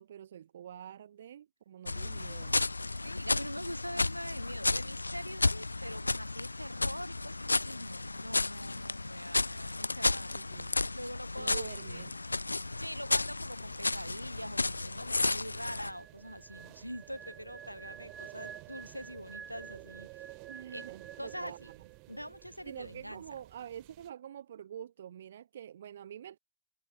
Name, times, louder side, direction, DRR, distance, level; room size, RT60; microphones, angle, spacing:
voice 1, 0.0-2.6 10.3-10.8 11.4-12.2 20.5-21.7 22.6-26.4, right 10 dB, 65° right, 0.9 m, -46 dB
sound 1, 1.9-15.9, left 3 dB, 80° left, 0.5 m, -33 dB
voice 2, 3.0-10.7 10.9-12.0 12.8-20.3 20.7-20.8 21.2-21.7 22.1-23.2, equal, 90° right, 2.0 m, -43 dB
sound 2, 13.5-24.1, right 40 dB or more, 45° right, 3.3 m, -53 dB
sound 3, 15.9-21.9 22.2-22.5, right 6 dB, 15° right, 2.0 m, -51 dB
figure-of-eight pair, 90°, 0 cm